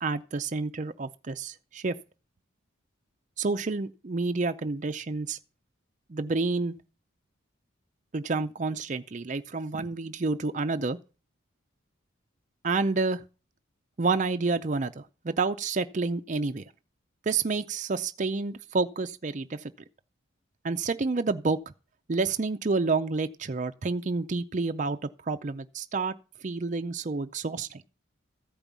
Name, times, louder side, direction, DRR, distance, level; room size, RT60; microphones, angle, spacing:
voice 1, 0.0-1.9 3.4-5.4 6.1-6.8 8.1-11.0 12.6-13.2 14.0-16.6 17.3-19.7 20.6-21.6 22.1-26.1 26.4-27.8, right 3 dB, 35° right, 0.5 m, -29 dB
14.0 x 5.3 x 7.3 m
head